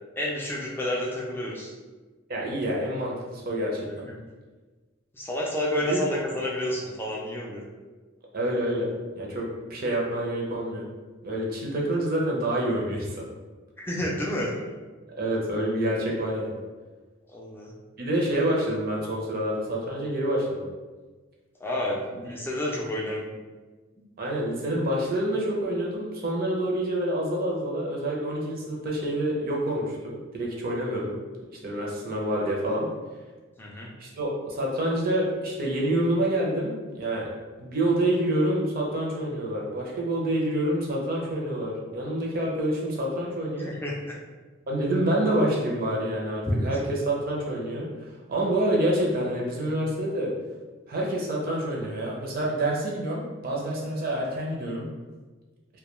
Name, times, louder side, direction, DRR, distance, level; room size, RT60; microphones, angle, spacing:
voice 1, 0.2-1.7 4.1-4.2 5.1-7.6 13.8-14.5 17.3-17.7 21.6-23.3 33.6-33.9 43.6-44.2 46.5-46.6, left 1 dB, 10° left, -4 dB, 0.3 m, -30 dB
voice 2, 2.3-4.0 5.8-6.1 8.3-8.9 9.1-10.8 11.2-13.2 15.2-16.6 18.0-20.6 24.2-31.1 31.5-32.9 34.0-37.2 37.6-43.7 44.7-47.9 48.3-50.3 50.9-54.9, right 1 dB, 45° right, -3 dB, 0.5 m, -27 dB
2.2 x 2.2 x 3.0 m, 1.3 s
head